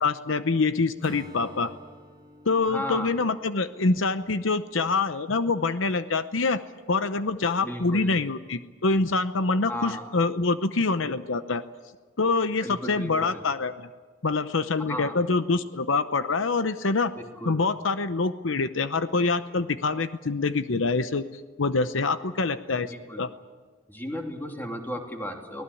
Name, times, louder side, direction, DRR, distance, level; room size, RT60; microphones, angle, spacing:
voice 1, 0.0-1.7 2.4-6.6 6.9-11.6 12.2-13.9 14.2-17.1 17.5-23.3, left 3 dB, 75° left, 11 dB, 0.8 m, -25 dB
Acoustic guitar / Strum, 1.0-4.9, equal, 25° right, 3.1 m, -49 dB
voice 2, 2.7-3.1 7.6-8.2 9.7-10.1 12.6-13.4 14.9-15.2 17.4-17.6 22.9-23.2 23.9-25.6, equal, 10° left, 2 dB, 3.1 m, -35 dB
23.5 x 18.5 x 8.5 m, 1.4 s
head